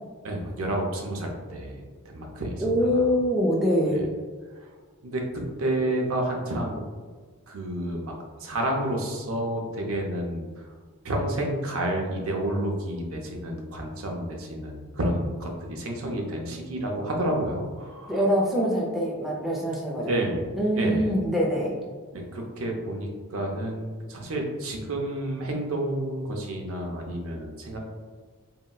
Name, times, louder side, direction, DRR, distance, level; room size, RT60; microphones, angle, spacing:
voice 1, 0.2-2.6 2.9-3.1 4.6-4.7 5.0-6.9 7.5-8.1 8.4-10.7 11.0-18.2 20.1-20.5 20.8-21.1 22.1-27.8, right 1 dB, 70° right, 0 dB, 0.5 m, -30 dB
voice 2, 2.6-4.1 18.1-20.2 20.6-21.8, equal, ahead, -4 dB, 0.4 m, -24 dB
3.8 x 2.0 x 2.2 m, 1.5 s
head